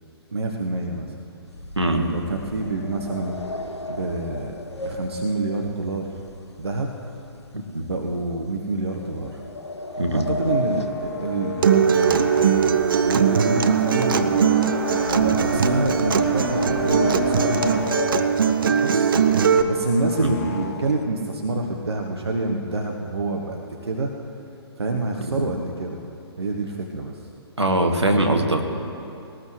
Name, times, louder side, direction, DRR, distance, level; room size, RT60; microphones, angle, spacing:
voice 1, 0.3-1.1 1.9-3.3 3.9-6.2 6.6-7.1 7.8-9.4 10.1-14.6 15.1-19.1 19.6-24.1 24.8-26.0 26.4-27.2, right 2 dB, 70° right, 1 dB, 1.2 m, -27 dB
sound 1, 1.5-6.8 7.1-7.5 8.0-8.1 8.9-12.2 12.5-18.8 19.4-19.5 19.8-20.0 20.4-21.0, left 2 dB, 75° left, 1.2 m, -32 dB
voice 2, 1.8-2.1 7.5-7.8 10.0-10.3 20.2-20.4 25.3-25.4 27.6-28.7, right 1 dB, 85° right, 3 dB, 1.7 m, -22 dB
sound 2, 10.5-12.9 13.3-15.6 16.0-18.3 18.7-21.1, left 5 dB, 35° left, 1.3 m, -36 dB
Acoustic guitar, 11.6-19.6, right 7 dB, 50° right, 0.8 m, -20 dB
19.5 x 19.0 x 3.3 m, 2.8 s
figure-of-eight pair, 130°, 14 cm